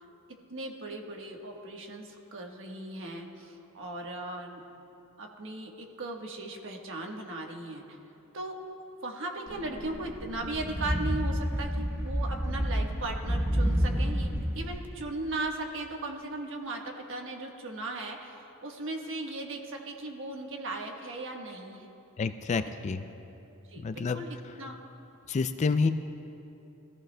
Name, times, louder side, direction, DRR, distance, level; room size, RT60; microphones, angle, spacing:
voice 1, 0.5-4.6 5.2-8.0 8.3-8.6 9.0-14.3 14.5-21.9 23.7-24.7, right 2 dB, 60° right, 1 dB, 1.3 m, -37 dB
sound 1, 9.5-14.9, equal, 10° right, 0.8 m, -30 dB
voice 2, 22.2-23.1 23.8-24.6 25.3-25.9, left 4 dB, 30° left, 10 dB, 0.3 m, -29 dB
21.0 x 14.5 x 2.2 m, 2.9 s
head